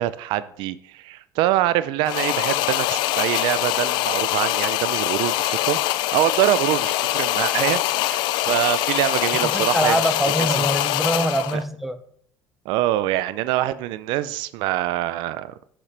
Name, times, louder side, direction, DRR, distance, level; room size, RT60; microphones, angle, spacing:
voice 1, 0.0-5.8 6.1-10.0 11.5-11.6 12.7-15.5, right 14 dB, 75° right, 15 dB, 0.4 m, -24 dB
sound 1, 2.1-11.6, left 16 dB, 70° left, 0.4 m, -23 dB
voice 2, 9.4-12.0, right 1 dB, ahead, 9 dB, 0.6 m, -24 dB
7.4 x 7.2 x 3.3 m, 0.63 s
cardioid pair, 115°, 8 cm